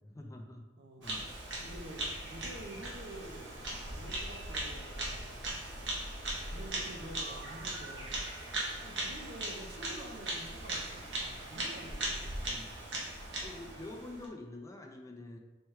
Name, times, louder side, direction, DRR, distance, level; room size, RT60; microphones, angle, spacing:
voice 1, 0.0-0.6 1.0-1.4 12.4-12.7 13.4-15.4, left 2 dB, 20° left, 2 dB, 0.4 m, -46 dB
voice 2, 0.8-5.9 6.5-8.3 8.6-12.5, right 1 dB, 65° right, 2 dB, 0.6 m, -49 dB
Bird vocalization bird call bird song, 1.0-14.3, right 1 dB, 90° right, 0.9 m, -39 dB
4.3 x 2.3 x 4.6 m, 1.2 s
head